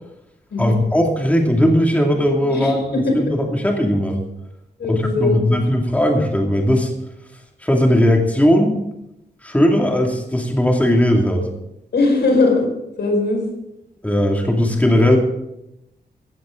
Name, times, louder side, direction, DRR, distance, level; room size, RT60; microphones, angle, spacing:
voice 1, 0.6-4.2 4.8-6.9 7.6-8.8 9.4-11.5 14.0-15.2, equal, 10° left, 1 dB, 2.4 m, -18 dB
voice 2, 2.4-3.0 4.8-5.6 11.9-12.7 13.0-13.4, left 3 dB, 85° left, 1 dB, 5.4 m, -19 dB
15.5 x 15.5 x 3.8 m, 0.86 s
wide cardioid pair, 125°, 17 cm